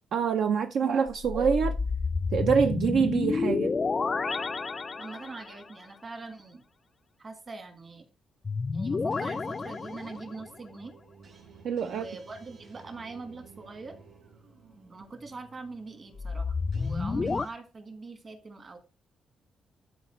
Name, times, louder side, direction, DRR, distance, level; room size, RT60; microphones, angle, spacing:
voice 1, 0.1-1.7 2.3-3.7 11.6-12.1, right 6 dB, 70° right, 0.5 m, -25 dB
sound 1, 1.1-5.6 8.4-10.5 16.2-17.5, left 4 dB, 30° left, 0.3 m, -30 dB
voice 2, 5.0-6.6 7.2-8.1 8.7-10.9 11.8-13.9 14.9-18.8, right 3 dB, 35° right, 1.5 m, -43 dB
sound 2, 9.0-17.5, right 5 dB, 50° right, 3.7 m, -54 dB
12.0 x 4.2 x 3.0 m
cardioid pair, 110°, 0 cm